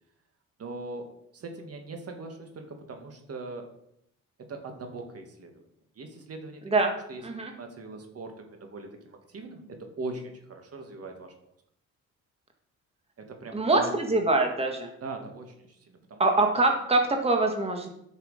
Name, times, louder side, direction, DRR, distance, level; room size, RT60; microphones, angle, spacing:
voice 1, 0.6-3.7 4.5-5.5 6.0-6.6 7.1-7.2 7.6-11.3 13.2-13.9 15.0-16.2, right 3 dB, 55° right, 4 dB, 2.1 m, -40 dB
voice 2, 13.5-14.9 16.2-17.9, right 2 dB, 20° right, 3 dB, 1.7 m, -24 dB
11.0 x 6.5 x 5.1 m, 0.75 s
cardioid pair, 90°, 30 cm